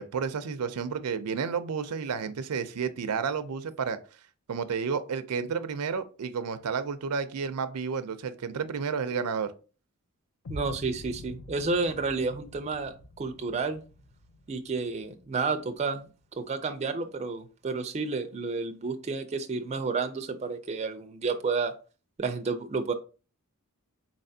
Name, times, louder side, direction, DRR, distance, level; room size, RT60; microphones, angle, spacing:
voice 1, 0.0-4.0 4.5-9.5, right 6 dB, 85° right, 0.5 m, -31 dB
sound 1, 10.4-16.5, left 1 dB, 80° left, 0.7 m, -47 dB
voice 2, 10.5-13.8 14.5-16.1 16.4-21.7 22.2-22.9, right 4 dB, 30° right, 0.4 m, -31 dB
4.2 x 3.3 x 2.7 m
head